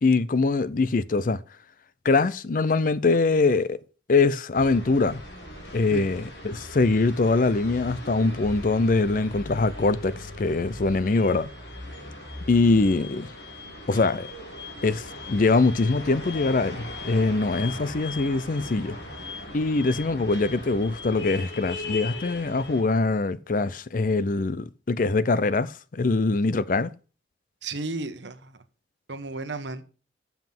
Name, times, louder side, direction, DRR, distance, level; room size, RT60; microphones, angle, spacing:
voice 1, 0.0-1.4 2.0-3.8 4.1-5.2 5.7-11.5 12.5-13.3 13.9-14.3 14.8-19.0 19.5-26.9, left 3 dB, 50° left, 0.5 m, -23 dB
sound 1, 4.5-22.8, left 2 dB, 75° left, 3.7 m, -39 dB
voice 2, 27.6-28.6 29.1-29.8, right 3 dB, 85° right, 1.1 m, -33 dB
7.1 x 5.8 x 7.5 m
head